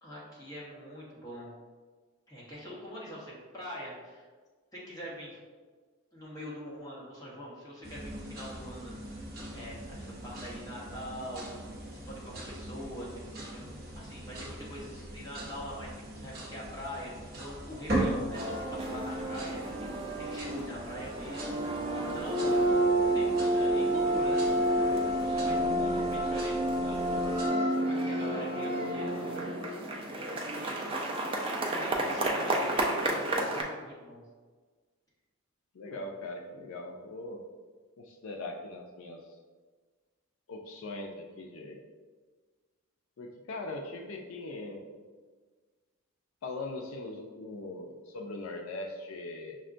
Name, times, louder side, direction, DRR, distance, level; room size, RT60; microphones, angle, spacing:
voice 1, 0.0-1.5 2.3-4.3 4.7-5.4 6.1-9.2 9.5-11.5 11.9-22.7 23.1-24.4 24.8-27.0 27.9-29.4 30.3-30.9 31.8-32.7 33.1-34.2 35.9-36.0, equal, 15° left, -7 dB, 1.0 m, -44 dB
sound 1, 7.8-27.5, right 1 dB, 45° right, 0.7 m, -40 dB
sound 2, 18.3-33.6, right 1 dB, 25° right, 0.3 m, -30 dB
voice 2, 35.7-37.4 38.0-39.3 40.5-41.8 43.2-44.9 46.4-49.6, left 2 dB, 75° left, 2 dB, 0.4 m, -40 dB
6.0 x 2.1 x 2.5 m, 1.4 s
head